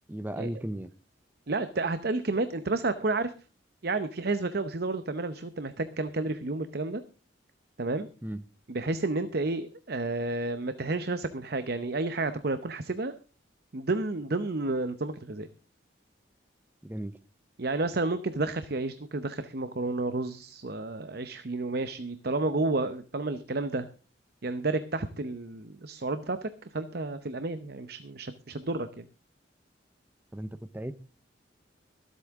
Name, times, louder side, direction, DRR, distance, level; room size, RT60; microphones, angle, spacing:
voice 1, 0.1-0.9 8.2-8.4 16.8-17.2 30.3-30.9, right 1 dB, 10° right, 15 dB, 0.6 m, -36 dB
voice 2, 1.5-3.3 3.8-7.0 7.8-8.1 8.7-13.1 13.7-15.5 17.6-23.9 24.4-29.1, right 2 dB, 55° right, 11 dB, 0.8 m, -31 dB
23.5 x 8.4 x 3.6 m, 0.36 s
head